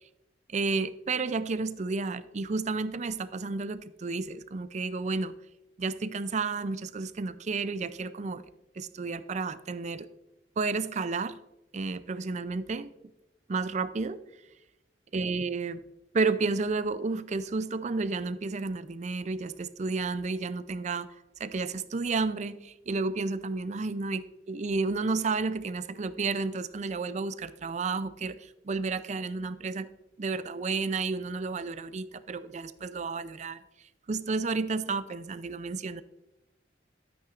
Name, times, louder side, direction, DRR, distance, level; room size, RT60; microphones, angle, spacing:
voice 1, 0.5-5.4 5.8-8.4 8.8-10.1 10.6-11.4 11.7-12.9 13.5-14.2 15.1-15.8 16.1-21.1 21.4-29.9 30.2-33.6 34.1-36.0, right 4 dB, 40° right, 14 dB, 0.4 m, -31 dB
13.0 x 8.8 x 2.5 m, 0.96 s
head